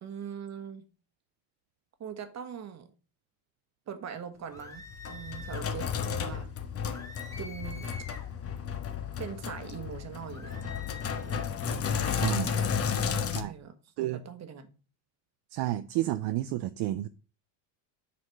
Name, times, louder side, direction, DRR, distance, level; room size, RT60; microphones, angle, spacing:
voice 1, 0.0-0.8 2.0-2.9 3.9-6.5 7.4-7.9 9.2-10.7 11.2-11.6 12.9-13.0 13.4-14.7, right 8 dB, 35° right, 1.3 m, -42 dB
sound 1, 4.5-5.7 6.9-8.3 10.3-11.5, left 2 dB, 5° left, 1.3 m, -47 dB
Sink (filling or washing), 4.6-13.4, left 7 dB, 30° left, 1.1 m, -33 dB
voice 2, 12.2-12.6 13.3-13.5 14.0-14.2 15.5-17.1, right 15 dB, 60° right, 0.6 m, -31 dB
7.6 x 4.2 x 6.4 m
cardioid pair, 135°, 46 cm